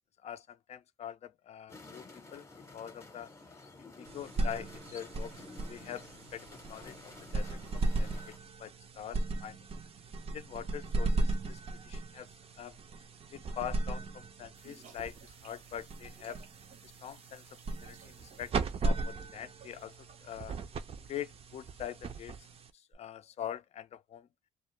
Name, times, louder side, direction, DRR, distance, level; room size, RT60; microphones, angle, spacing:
voice 1, 0.2-3.3 3.8-8.3 8.6-9.6 10.3-12.8 13.3-16.4 16.8-17.4 17.7-18.5 18.8-20.6 21.1-22.5 22.7-24.3, left 10 dB, 50° left, 0.4 m, -44 dB
sound 1, 1.7-8.4, left 3 dB, 20° left, 0.8 m, -52 dB
sound 2, 4.1-22.9, right 2 dB, 45° right, 0.5 m, -37 dB
sound 3, 14.5-20.4, right 6 dB, 70° right, 0.8 m, -59 dB
2.3 x 2.0 x 3.0 m
supercardioid pair, 65°, 14 cm